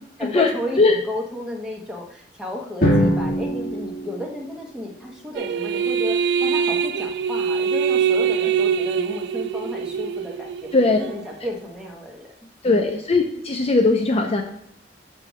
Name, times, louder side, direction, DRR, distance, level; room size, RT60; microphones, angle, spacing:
voice 1, 0.2-10.7 10.9-12.3 12.6-13.0, left 1 dB, 5° right, -1 dB, 1.2 m, -33 dB
Drum, 2.8-4.9, equal, 55° left, 2.0 m, -22 dB
sound 1, 5.4-11.2, right 7 dB, 70° right, 0.3 m, -23 dB
voice 2, 12.6-14.4, left 3 dB, 35° left, 4 dB, 0.5 m, -18 dB
6.6 x 5.5 x 3.1 m, 0.71 s
head